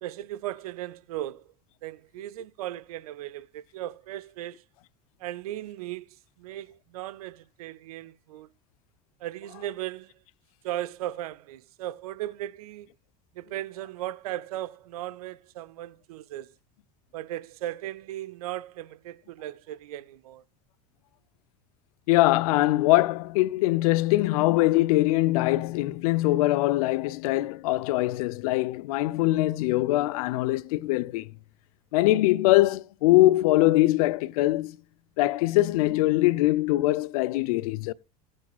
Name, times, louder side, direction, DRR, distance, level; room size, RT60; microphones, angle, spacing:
voice 1, 0.0-1.5 1.8-4.6 5.2-8.5 9.2-10.1 10.6-12.9 13.3-16.5 17.1-20.4, right 14 dB, 85° right, 0.6 m, -37 dB
voice 2, 22.1-31.3 31.9-34.8 35.2-37.9, left 18 dB, 80° left, 0.6 m, -22 dB
16.5 x 8.8 x 2.4 m
supercardioid pair, 105°, 18 cm